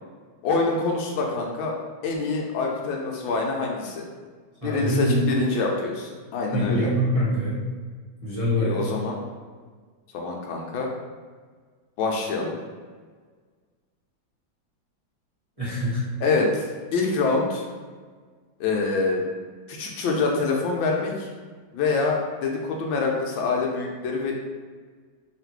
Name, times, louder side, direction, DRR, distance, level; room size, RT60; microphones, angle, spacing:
voice 1, 0.4-1.8 2.0-4.0 4.6-6.9 8.6-9.2 10.1-10.9 12.0-12.6 16.2-16.7 16.9-17.7 18.6-19.2 19.7-21.3 21.7-24.3, left 4 dB, 90° left, 0 dB, 1.4 m, -25 dB
voice 2, 4.6-5.4 6.5-7.7 8.2-8.9 15.6-16.0, equal, 25° right, -10 dB, 0.9 m, -24 dB
3.5 x 2.5 x 4.4 m, 1.5 s
omnidirectional pair, 2.1 m